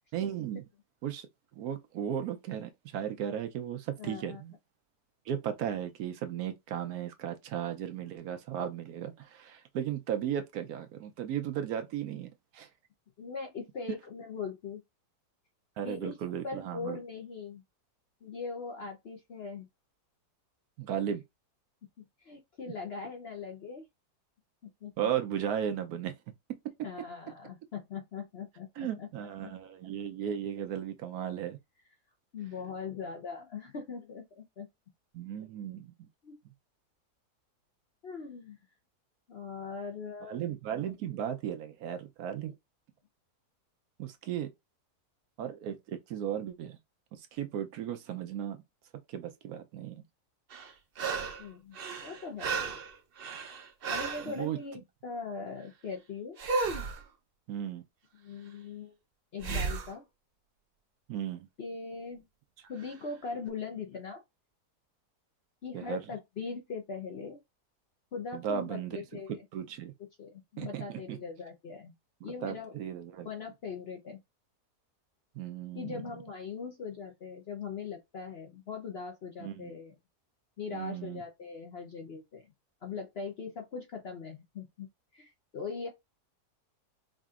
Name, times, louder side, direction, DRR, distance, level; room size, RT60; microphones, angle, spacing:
voice 1, 0.1-0.6 1.0-1.3 1.6-4.5 5.3-12.7 15.8-17.0 20.8-21.2 25.0-26.1 28.8-31.6 35.1-35.9 40.3-42.5 44.0-44.5 45.4-46.8 47.1-48.6 49.1-50.0 54.2-54.6 57.5-57.8 61.1-61.5 65.7-66.0 68.3-69.0 69.3-69.9 70.6-71.2 72.4-73.3 75.3-76.0 79.4-79.7 80.7-81.2, right 9 dB, 70° right, 1.0 m, -35 dB
voice 2, 4.0-4.4 13.2-14.8 15.8-16.2 16.4-17.6 18.2-19.7 22.0-23.9 24.6-25.1 26.8-29.1 32.3-34.7 36.2-36.4 38.0-38.6 39.3-40.4 42.4-42.5 51.4-52.7 53.9-56.4 58.1-58.9 59.3-60.1 61.6-62.2 62.7-64.2 65.6-67.4 68.1-69.3 70.2-71.9 72.2-72.7 73.2-74.2 75.7-80.0 80.6-82.5 82.8-84.9 85.1-85.9, left 5 dB, 55° left, 0.7 m, -40 dB
sound 1, 50.5-51.5 51.7-54.3 56.4-57.0 59.4-59.9 62.8-62.9, right 4 dB, 55° right, 0.6 m, -33 dB
4.9 x 2.7 x 2.4 m
omnidirectional pair, 1.7 m